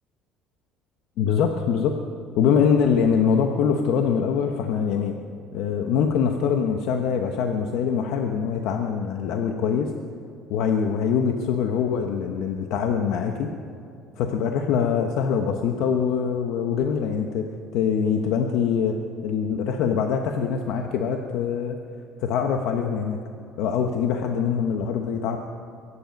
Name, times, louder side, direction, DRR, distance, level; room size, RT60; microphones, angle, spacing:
voice 1, 1.2-1.9 2.4-5.1 5.5-9.9 10.5-13.5 14.2-17.5 17.7-19.0 19.2-21.8 22.2-23.2 23.6-25.4, left 7 dB, 75° left, 4 dB, 1.0 m, -23 dB
23.5 x 10.0 x 5.3 m, 2.6 s
cardioid pair, 125°, 0 cm